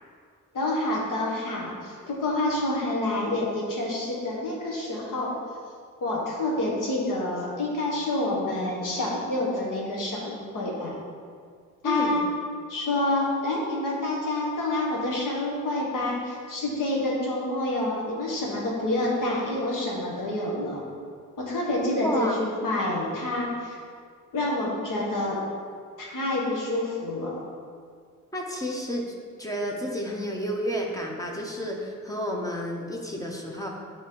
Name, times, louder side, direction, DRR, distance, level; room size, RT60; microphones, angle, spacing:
voice 1, 0.5-5.3 6.0-10.9 11.8-12.3 12.7-20.8 21.4-23.8 24.3-25.4 26.0-27.4, left 1 dB, 80° left, -2 dB, 1.4 m, -28 dB
voice 2, 11.8-12.2 22.0-22.4 28.3-29.0 29.4-33.7, equal, 10° left, 0 dB, 0.6 m, -30 dB
9.1 x 3.4 x 3.7 m, 2.1 s
wide cardioid pair, 160°, 32 cm